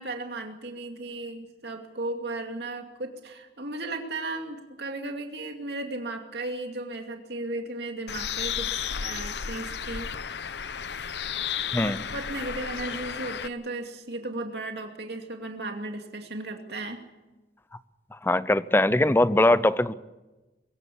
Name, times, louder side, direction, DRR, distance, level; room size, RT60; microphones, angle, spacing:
voice 1, 0.0-10.1 11.8-17.0, right 2 dB, 65° right, 3 dB, 2.5 m, -35 dB
Bird, 8.1-13.5, left 8 dB, 70° left, 0.7 m, -33 dB
voice 2, 11.7-12.1 18.2-19.9, left 1 dB, 15° left, 15 dB, 0.6 m, -21 dB
24.0 x 15.5 x 8.5 m, 1.1 s
head